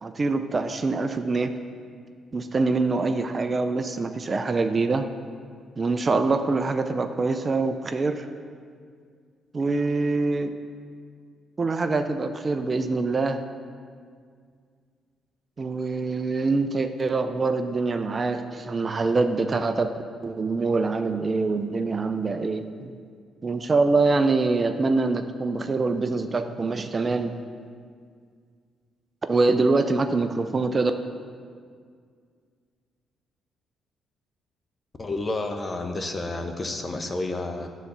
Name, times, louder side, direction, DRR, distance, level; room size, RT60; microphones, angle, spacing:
voice 1, 0.0-1.5 2.3-5.1 5.8-8.3 9.5-10.5 11.6-13.4 15.6-22.9 23.4-27.4 29.3-30.9, right 3 dB, 35° right, 8 dB, 0.4 m, -24 dB
voice 2, 35.0-37.7, left 2 dB, 30° left, 5 dB, 0.8 m, -30 dB
10.0 x 4.1 x 6.7 m, 2.1 s
cardioid pair, 90°, 0 cm